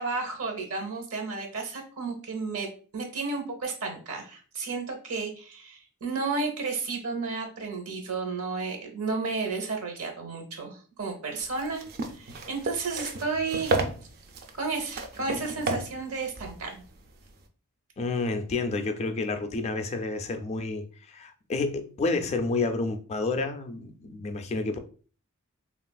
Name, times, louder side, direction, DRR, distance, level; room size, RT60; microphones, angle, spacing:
voice 1, 0.0-2.7 2.9-13.8 14.5-16.8, right 4 dB, 70° right, 0.8 m, -32 dB
sound 1, 11.4-17.4, right 2 dB, 45° right, 0.4 m, -33 dB
voice 2, 18.0-24.8, left 3 dB, 30° left, 0.3 m, -30 dB
3.2 x 2.4 x 2.2 m
head